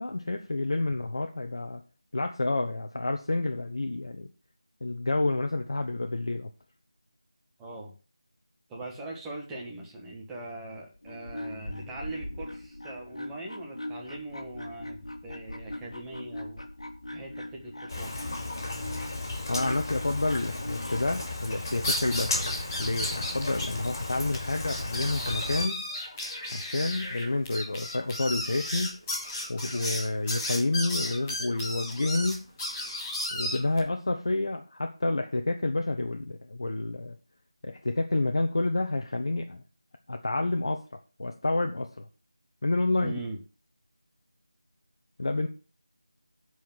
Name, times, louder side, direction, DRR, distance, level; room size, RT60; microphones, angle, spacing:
voice 1, 0.0-1.8 2.1-4.3 4.8-6.5 19.5-25.8 26.5-29.0 29.5-32.4 33.3-37.2 37.6-39.6 40.1-40.8 41.2-42.1 42.6-43.2 45.2-45.5, left 2 dB, 60° left, 4 dB, 1.1 m, -29 dB
voice 2, 7.6-7.9 8.7-16.6 17.1-18.1 43.0-43.4, right 2 dB, 5° right, -3 dB, 1.6 m, -41 dB
sound 1, 10.9-21.2, left 1 dB, 80° left, 1.7 m, -41 dB
Rain, 17.9-25.7, left 2 dB, 40° left, 4.6 m, -35 dB
sound 2, 21.6-23.7 23.9-24.0 24.3-24.4 24.7-33.8, left 1 dB, 15° left, 2.5 m, -34 dB
10.5 x 4.9 x 7.3 m, 0.34 s
figure-of-eight pair, 170°, 3 cm